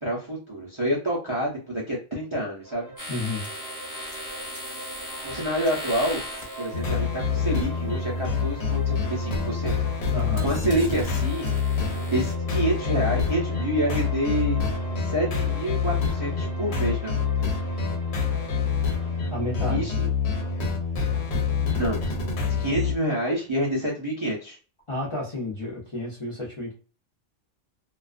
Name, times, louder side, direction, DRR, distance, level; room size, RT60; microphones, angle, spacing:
voice 1, 0.0-2.9 5.2-6.2 6.6-9.7 10.4-11.5 12.1-14.6 15.0-17.3 19.7-20.1 21.8-24.6, right 1 dB, 35° right, -5 dB, 0.5 m, -28 dB
sound 1, 2.6-19.6, right 2 dB, 60° right, 1.0 m, -42 dB
sound 2, 3.0-7.0 9.0-9.3 9.8-12.3, left 1 dB, 15° left, 1.0 m, -38 dB
voice 2, 3.1-3.5 10.1-10.5 19.3-19.9 24.9-26.7, left 2 dB, 35° left, -5 dB, 0.6 m, -31 dB
sound 3, 6.7-22.9, left 5 dB, 65° left, 0.9 m, -26 dB
2.3 x 2.2 x 2.4 m, 0.35 s
omnidirectional pair, 1.2 m